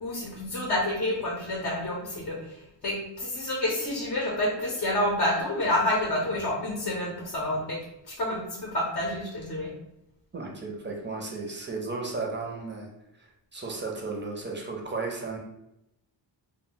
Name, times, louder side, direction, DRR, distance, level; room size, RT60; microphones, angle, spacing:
voice 1, 0.0-7.8 8.1-9.7, left 1 dB, 45° left, -3 dB, 0.6 m, -29 dB
voice 2, 10.3-12.9 13.2-15.4, right 3 dB, 25° right, 0 dB, 0.5 m, -34 dB
2.2 x 2.1 x 3.7 m, 0.87 s
wide cardioid pair, 115°, 44 cm